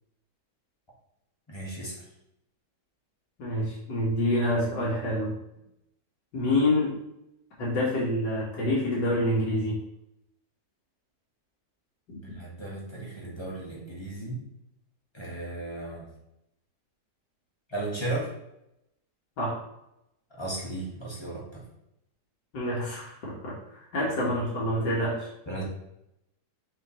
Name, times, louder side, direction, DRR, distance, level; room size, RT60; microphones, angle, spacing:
voice 1, 1.5-2.0 12.2-14.4 15.1-16.1 17.7-18.3 20.4-21.6 25.5-25.6, right 2 dB, 15° left, -5 dB, 1.7 m, -35 dB
voice 2, 3.4-5.3 6.3-7.0 7.6-9.8 12.1-12.2 19.4-19.6 22.5-23.6 23.9-25.3, left 1 dB, 90° left, -5 dB, 2.3 m, -27 dB
6.1 x 5.3 x 3.1 m, 0.83 s
omnidirectional pair, 1.8 m